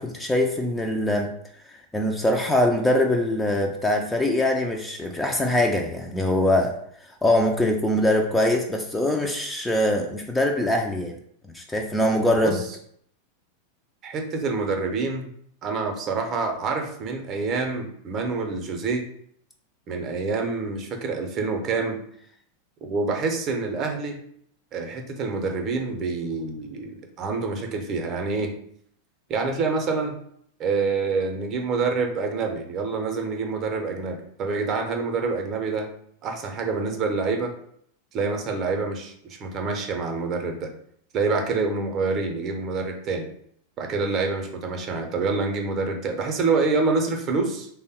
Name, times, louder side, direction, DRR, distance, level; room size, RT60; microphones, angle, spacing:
voice 1, 0.0-1.3 1.7-6.7 7.2-11.2 11.5-12.6, left 1 dB, 5° left, 2 dB, 0.4 m, -23 dB
voice 2, 14.0-15.3 15.6-19.0 19.9-22.0 22.8-24.2 24.7-28.5 29.3-30.1 30.6-35.9 36.2-37.5 38.1-40.7 41.1-43.3 43.8-47.7, right 4 dB, 35° right, 4 dB, 0.6 m, -27 dB
3.3 x 2.1 x 4.2 m, 0.66 s
figure-of-eight pair, 90°, 0 cm